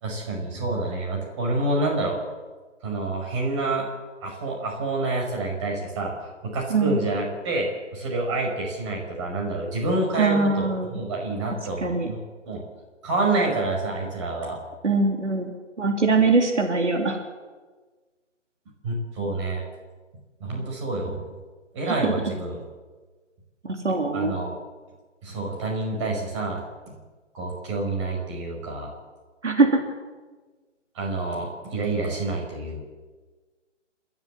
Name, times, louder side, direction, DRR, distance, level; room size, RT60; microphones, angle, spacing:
voice 1, 0.0-2.2 2.8-3.9 4.2-10.7 10.9-12.2 12.5-12.6 13.0-14.6 18.8-19.6 20.4-21.2 21.7-22.6 24.1-24.6 25.2-26.6 27.3-28.9 31.0-32.8, right 2 dB, 25° right, 0 dB, 5.3 m, -28 dB
voice 2, 10.2-11.0 11.8-12.1 14.8-17.2 21.9-22.1 23.6-24.3 29.4-29.8, right 3 dB, 65° right, 3 dB, 3.3 m, -22 dB
28.5 x 13.5 x 7.9 m, 1.3 s
figure-of-eight pair, 150°, 37 cm